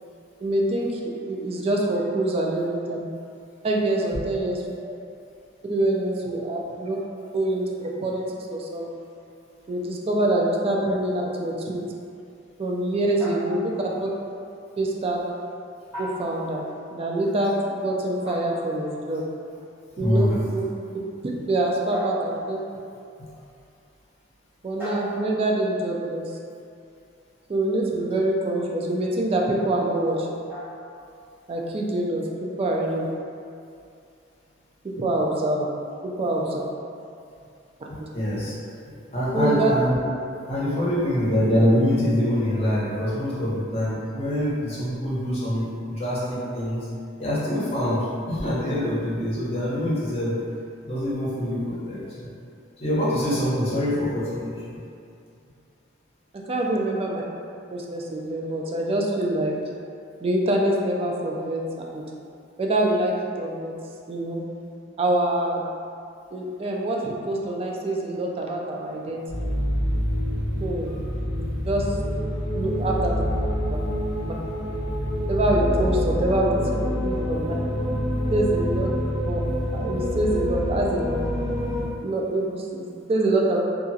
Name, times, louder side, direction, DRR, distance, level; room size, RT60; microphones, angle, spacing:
voice 1, 0.4-3.0 3.6-4.6 5.7-7.0 7.3-8.2 8.5-8.9 9.7-11.8 12.6-14.1 14.8-15.2 16.0-16.6 16.9-19.3 20.0-20.6 21.5-22.6 24.6-26.3 27.5-30.3 31.5-33.1 34.8-35.7 36.0-36.6 37.8-37.9 39.3-39.7 56.3-57.2 57.7-59.5 60.2-61.6 61.9-62.0 62.6-63.8 64.1-64.4 65.0-65.6 66.3-69.3 70.6-71.0 71.7-71.9 72.5-73.1 75.3-76.6 77.0-77.6 78.3-78.9 79.3-79.4 79.7-81.1 82.0-83.6, right 1 dB, 30° right, -1 dB, 0.3 m, -25 dB
sound 1, 13.2-14.0 15.9-16.8 18.3-18.9 20.3-20.7 21.9-22.9 24.8-25.6 28.6-28.9 30.5-31.0, right 1 dB, 10° right, 1.0 m, -37 dB
voice 2, 20.0-20.3 37.9-38.6 38.9-39.9 40.5-46.9 47.2-50.4 50.8-52.3 52.8-54.8, equal, 30° left, -9 dB, 0.8 m, -25 dB
sound 2, 69.3-81.8, equal, 55° right, 1.0 m, -26 dB
2.9 x 2.4 x 2.7 m, 2.5 s
head